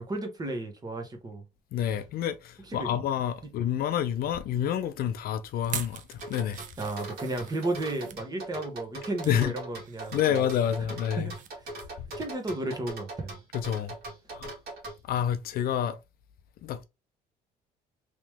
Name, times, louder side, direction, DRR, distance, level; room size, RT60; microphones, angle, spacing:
voice 1, 0.0-1.4 2.6-3.0 3.4-3.5 6.8-10.5 11.2-11.3 11.6-11.8 12.2-13.4, right 2 dB, 25° right, 1.1 m, -34 dB
voice 2, 1.7-6.6 9.3-9.5 10.1-11.3 12.0-12.1 13.5-14.0 14.3-14.5 15.1-16.0 16.6-16.8, left 9 dB, 65° left, 0.5 m, -28 dB
sound 1, 5.6-8.2 8.8-9.4 9.8-11.5 11.8-12.0 12.4-12.5, right 9 dB, 50° right, 0.5 m, -43 dB
sound 2, 6.2-15.0, right 2 dB, 65° right, 1.8 m, -40 dB
3.1 x 2.9 x 3.4 m
cardioid pair, 110°, 17 cm